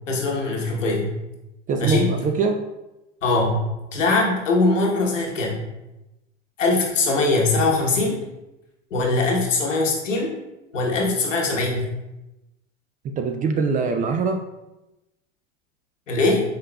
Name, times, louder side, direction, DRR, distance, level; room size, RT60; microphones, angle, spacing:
voice 1, 0.1-1.1 1.8-2.1 3.2-3.6 3.9-5.6 6.6-8.2 8.9-10.3 10.7-11.9 16.1-16.4, left 2 dB, 90° left, -1 dB, 1.1 m, -21 dB
voice 2, 1.7-2.6 13.0-14.4, right 4 dB, 25° right, 5 dB, 0.3 m, -23 dB
5.3 x 3.8 x 2.3 m, 0.97 s
hypercardioid pair, 90°, 37 cm